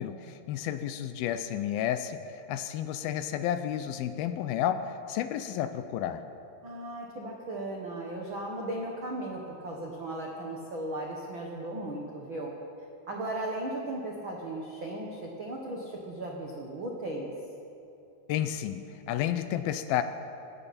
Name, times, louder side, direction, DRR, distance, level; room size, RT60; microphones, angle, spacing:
voice 1, 0.0-4.8 5.1-6.2 18.3-18.8 19.1-20.0, left 11 dB, 80° left, 10 dB, 2.3 m, -31 dB
voice 2, 6.6-12.5 13.1-17.3, right 1 dB, 65° right, -2 dB, 1.2 m, -36 dB
20.0 x 17.0 x 4.3 m, 2.7 s
omnidirectional pair, 4.5 m